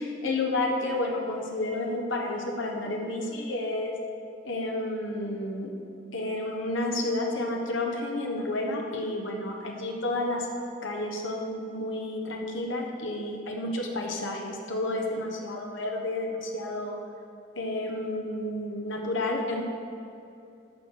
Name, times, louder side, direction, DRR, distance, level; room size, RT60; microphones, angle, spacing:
voice 1, 0.0-3.9 4.4-5.7 6.1-10.5 10.8-17.0 17.6-19.6, left 2 dB, 85° left, 1 dB, 1.2 m, -31 dB
12.5 x 4.7 x 5.1 m, 2.7 s
head